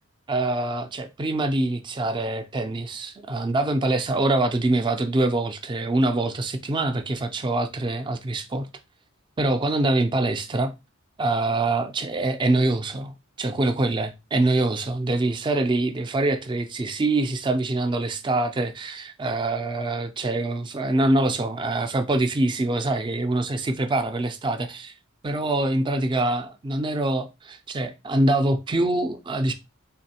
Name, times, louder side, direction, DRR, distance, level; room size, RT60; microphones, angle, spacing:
voice 1, 0.3-8.7 9.4-10.7 11.2-24.9 25.2-29.5, right 2 dB, 20° right, 0.4 m, -24 dB
3.7 x 3.2 x 2.7 m
head